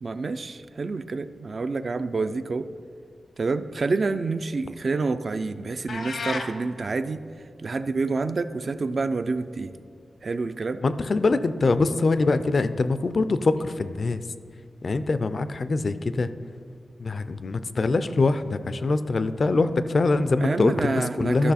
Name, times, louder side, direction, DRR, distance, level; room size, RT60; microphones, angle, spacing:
voice 1, 0.0-2.7 3.4-7.2 7.6-9.7 10.2-10.8 20.4-21.5, right 3 dB, 50° right, 10 dB, 0.4 m, -28 dB
sound 1, 5.9-6.5, left 3 dB, 75° left, 0.8 m, -31 dB
voice 2, 10.8-14.2 14.8-16.3 17.0-21.5, left 3 dB, 50° left, 12 dB, 0.4 m, -23 dB
12.5 x 6.1 x 4.1 m, 2.2 s
wide cardioid pair, 125°, 0 cm